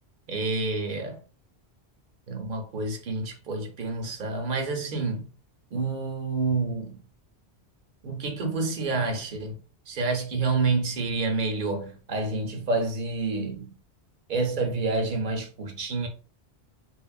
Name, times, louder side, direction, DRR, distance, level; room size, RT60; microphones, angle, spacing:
voice 1, 0.3-1.2 2.3-5.3 5.7-7.0 8.0-9.6 9.9-13.7 14.3-16.1, right 3 dB, 60° right, 0.6 m, -28 dB
3.0 x 2.2 x 2.3 m
omnidirectional pair, 1.1 m